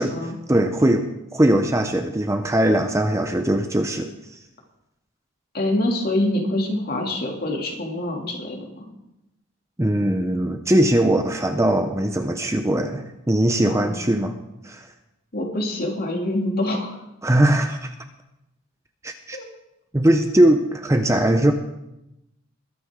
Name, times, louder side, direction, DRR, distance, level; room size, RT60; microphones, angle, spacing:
voice 1, 0.5-4.4 9.8-14.3 14.6-14.9 17.2-17.9 19.0-19.4 19.9-21.5, right 1 dB, 15° right, 6 dB, 0.6 m, -20 dB
voice 2, 5.5-8.9 13.6-14.0 15.3-17.0 19.3-19.4, left 1 dB, 45° left, -1 dB, 2.6 m, -25 dB
21.5 x 9.5 x 3.7 m, 0.90 s
head